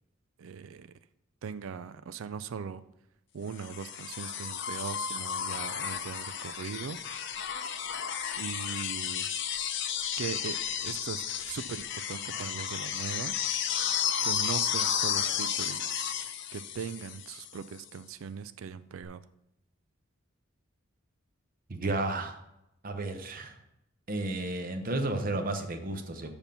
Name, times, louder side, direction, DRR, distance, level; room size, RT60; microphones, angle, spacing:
voice 1, 0.4-0.9 1.4-2.8 3.3-7.0 8.4-9.3 10.2-13.4 14.2-16.1 16.5-19.2, right 6 dB, 80° right, 14 dB, 0.4 m, -39 dB
sound 1, 3.6-17.6 19.0-19.1, left 8 dB, 60° left, 0.7 m, -33 dB
voice 2, 21.7-22.4 22.8-23.6 24.1-26.3, right 2 dB, 45° right, 6 dB, 0.8 m, -32 dB
7.1 x 5.3 x 5.7 m, 0.83 s
head